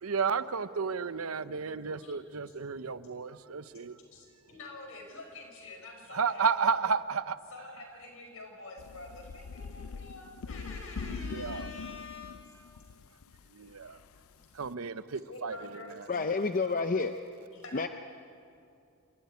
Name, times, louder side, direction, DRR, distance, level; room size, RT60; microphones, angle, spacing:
voice 1, 0.0-4.0 6.1-7.4 11.1-11.7 13.5-14.0 14.6-15.6 16.2-16.3, right 5 dB, 85° right, 14 dB, 0.8 m, -32 dB
voice 2, 4.1-6.5 7.5-12.5 15.3-15.9 17.5-17.9, left 3 dB, 70° left, 2 dB, 5.3 m, -47 dB
sound 1, 8.8-14.7, left 5 dB, 90° left, 0.5 m, -42 dB
voice 3, 16.1-17.1 17.7-17.9, left 4 dB, 40° left, 8 dB, 0.6 m, -29 dB
27.5 x 14.5 x 9.6 m, 2.5 s
head